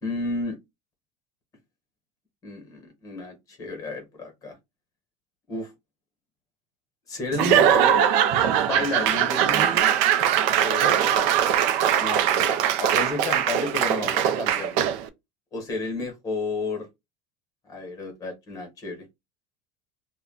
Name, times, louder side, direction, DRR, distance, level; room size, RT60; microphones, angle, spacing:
voice 1, 0.0-0.6 2.4-4.5 5.5-5.7 7.1-8.0 8.6-9.9 10.6-11.2 12.0-14.8 15.5-16.9 17.7-19.0, left 3 dB, 20° left, 1.0 m, -32 dB
Laughter / Applause / Crowd, 7.3-15.1, right 9 dB, 50° right, 0.4 m, -21 dB
2.4 x 2.1 x 3.5 m
cardioid pair, 170°, 17 cm